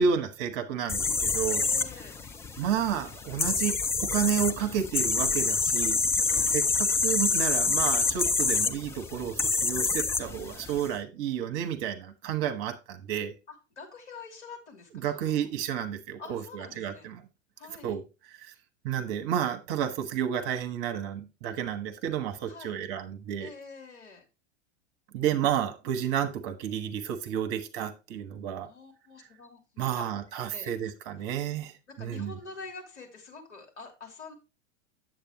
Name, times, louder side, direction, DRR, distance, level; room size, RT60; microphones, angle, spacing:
voice 1, 0.0-1.6 2.6-3.7 4.1-6.0 6.5-13.3 15.0-17.2 17.8-18.0 18.4-18.5 18.8-23.5 25.1-28.7 29.8-31.7 32.0-32.3, right 8 dB, 45° right, 8 dB, 1.3 m, -31 dB
sound 1, 0.9-10.9, left 4 dB, 5° left, 0.4 m, -27 dB
voice 2, 1.5-2.2 6.2-6.6 13.5-15.5 16.2-17.1 17.6-18.0 22.5-22.8 23.4-24.2 28.6-30.0 30.5-30.9 31.9-34.3, left 4 dB, 65° left, 2 dB, 3.1 m, -46 dB
8.8 x 7.8 x 3.0 m, 0.28 s
figure-of-eight pair, 90°, 37 cm